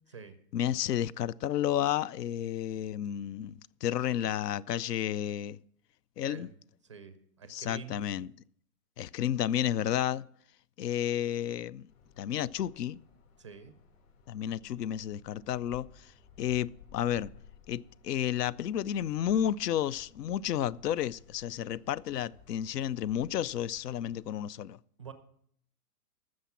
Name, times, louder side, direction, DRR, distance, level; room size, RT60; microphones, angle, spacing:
voice 1, 0.5-5.6 6.2-6.5 7.5-8.3 9.0-10.3 10.8-11.9 12.2-13.0 14.3-16.1 16.4-17.3 17.7-24.8, left 11 dB, 85° left, 0.6 m, -31 dB
voice 2, 6.2-6.6 6.8-8.0 13.4-13.7 25.0-25.1, right 6 dB, 25° right, 0.3 m, -47 dB
sound 1, 11.9-24.2, left 6 dB, 65° left, 6.0 m, -57 dB
13.0 x 7.5 x 5.9 m
hypercardioid pair, 150°, 47 cm